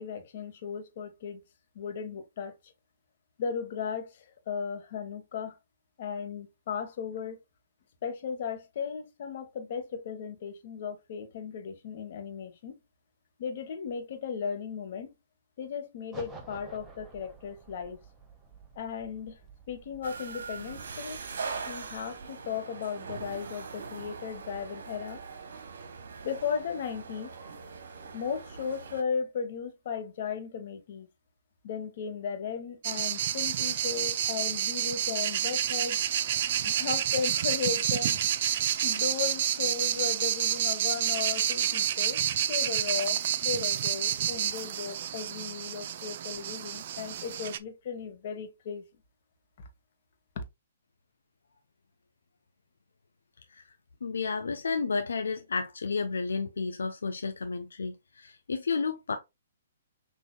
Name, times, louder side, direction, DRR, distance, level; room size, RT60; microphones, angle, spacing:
voice 1, 0.0-1.4 1.7-2.5 3.4-5.6 6.0-7.4 8.0-12.7 13.4-15.1 15.6-18.0 18.8-19.4 19.7-21.2 21.7-25.2 26.2-27.3 28.1-31.1 31.6-36.0 36.6-38.2 38.8-48.9 50.3-50.4, left 6 dB, 55° left, 1.2 m, -36 dB
sound 1, 16.1-22.3, right 4 dB, 10° right, 1.0 m, -51 dB
sound 2, 20.0-29.0, right 5 dB, 70° right, 0.9 m, -41 dB
sound 3, 32.8-47.6, right 10 dB, 50° right, 0.4 m, -29 dB
voice 2, 54.0-59.2, left 4 dB, 85° left, 0.5 m, -32 dB
6.4 x 2.7 x 2.2 m
hypercardioid pair, 135°, 0 cm